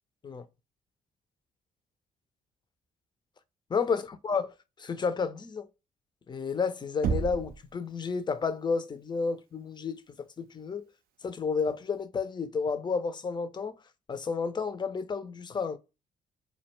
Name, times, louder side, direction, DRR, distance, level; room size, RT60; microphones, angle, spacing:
voice 1, 3.7-4.5 4.8-5.7 6.3-10.8 11.2-13.7 14.1-15.8, left 5 dB, 25° left, 0.4 m, -31 dB
Knock, 7.0-7.7, right 6 dB, 55° right, 0.5 m, -29 dB
2.2 x 2.2 x 3.0 m
hypercardioid pair, 50°, 18 cm